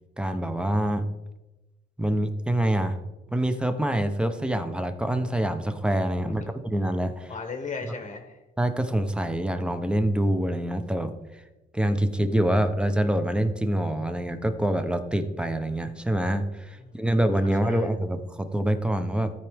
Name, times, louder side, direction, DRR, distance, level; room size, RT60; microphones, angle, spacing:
voice 1, 0.2-1.0 2.0-3.0 3.3-6.4 6.7-7.3 8.6-11.1 11.7-19.3, right 1 dB, 5° right, 9 dB, 0.8 m, -25 dB
voice 2, 7.3-8.4 16.8-17.1 17.6-17.9, left 4 dB, 35° left, 6 dB, 1.1 m, -37 dB
13.5 x 4.8 x 3.6 m, 1.1 s
cardioid pair, 90°, 20 cm